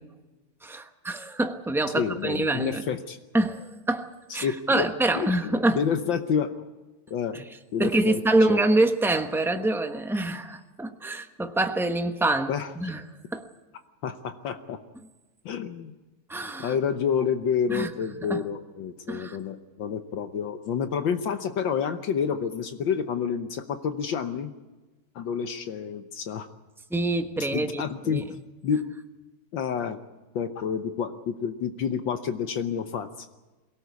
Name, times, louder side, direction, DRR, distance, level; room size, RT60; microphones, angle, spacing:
voice 1, 0.6-2.8 3.3-5.8 7.3-7.4 7.8-12.5 12.8-13.0 13.3-13.5 16.3-16.7 17.7-17.9 18.2-18.4 19.1-19.4 26.9-28.2, right 2 dB, ahead, 6 dB, 0.6 m, -26 dB
voice 2, 2.0-3.2 4.3-4.9 5.1-6.6 7.1-7.5 7.7-8.2 8.5-8.6 12.5-12.9 14.0-14.8 15.4-15.9 16.6-24.5 25.1-26.5 27.5-28.2 28.6-28.8 29.5-30.0 30.3-33.3, left 7 dB, 65° left, 8 dB, 1.6 m, -29 dB
23.0 x 18.0 x 8.2 m, 1.2 s
omnidirectional pair, 2.3 m